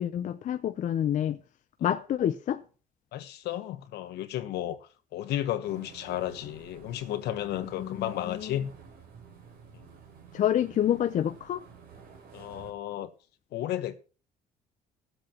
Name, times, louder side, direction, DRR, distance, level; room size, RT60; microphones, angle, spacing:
voice 1, 0.0-1.4 1.8-2.6 7.8-8.5 10.3-11.6, left 10 dB, 50° left, 0.6 m, -28 dB
voice 2, 3.1-8.7 12.3-13.1 13.5-14.0, left 12 dB, 75° left, 1.1 m, -33 dB
sound 1, 5.6-12.7, right 6 dB, 65° right, 3.2 m, -51 dB
20.0 x 7.8 x 2.9 m
cardioid pair, 110°, 17 cm